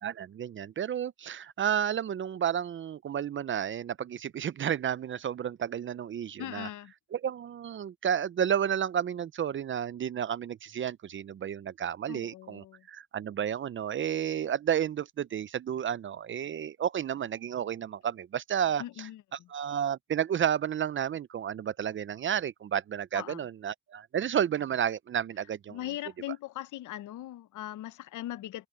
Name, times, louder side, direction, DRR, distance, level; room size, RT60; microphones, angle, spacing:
voice 1, 0.0-6.7 7.1-25.8, right 9 dB, 40° right, 0.5 m, -31 dB
voice 2, 6.4-6.9 12.1-12.9 18.8-19.5 23.1-23.4 25.7-28.7, left 14 dB, 80° left, 0.9 m, -40 dB
open air
cardioid pair, 90°, 30 cm